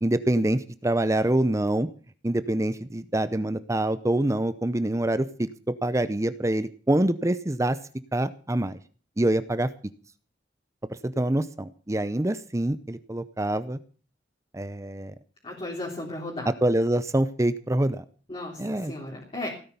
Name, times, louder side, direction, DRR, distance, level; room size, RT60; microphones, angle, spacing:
voice 1, 0.0-1.9 2.2-7.8 8.1-8.8 9.2-9.7 11.0-13.8 14.5-15.1 16.5-18.0 18.6-18.9, right 1 dB, 15° right, 14 dB, 0.6 m, -25 dB
voice 2, 15.4-16.5 18.3-19.5, left 2 dB, 30° left, -3 dB, 3.4 m, -35 dB
17.0 x 10.0 x 6.9 m, 0.41 s
head